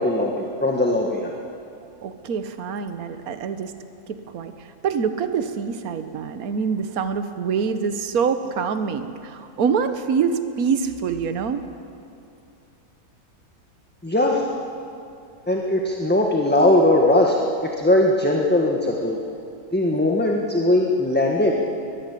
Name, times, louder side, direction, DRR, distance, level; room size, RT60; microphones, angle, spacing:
voice 1, 0.0-1.3 14.0-14.4 15.5-17.4 17.6-19.2 19.7-21.5, left 1 dB, 5° left, 0 dB, 1.6 m, -19 dB
voice 2, 2.0-3.7 4.1-11.6, right 6 dB, 70° right, 9 dB, 1.5 m, -25 dB
23.0 x 20.0 x 8.4 m, 2.6 s
omnidirectional pair, 1.6 m